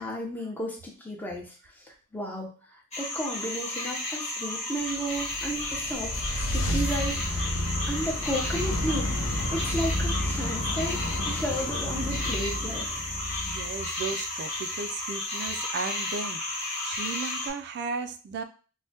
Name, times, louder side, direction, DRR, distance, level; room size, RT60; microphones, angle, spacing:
voice 1, 0.0-1.8 2.1-2.5 3.0-6.1 6.5-7.5 7.9-13.0, equal, 10° left, -1 dB, 0.6 m, -33 dB
sound 1, 2.9-17.5, left 2 dB, 30° left, 1.1 m, -33 dB
sound 2, 4.9-14.2, left 1 dB, 70° left, 0.5 m, -31 dB
voice 2, 13.5-18.4, right 4 dB, 50° right, 9 dB, 0.3 m, -35 dB
3.3 x 2.1 x 2.7 m, 0.37 s
head